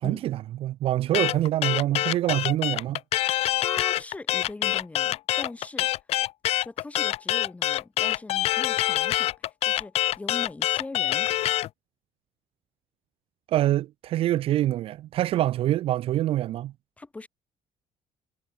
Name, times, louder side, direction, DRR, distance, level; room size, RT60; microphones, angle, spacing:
voice 1, 0.0-3.0 13.5-16.7, right 13 dB, 50° right, 0.6 m, -25 dB
sound 1, 1.1-11.7, left 14 dB, 60° left, 0.9 m, -25 dB
voice 2, 3.6-5.9 6.6-11.3 17.0-17.3, left 3 dB, 10° left, 6.6 m, -40 dB
cardioid pair, 175°, 12 cm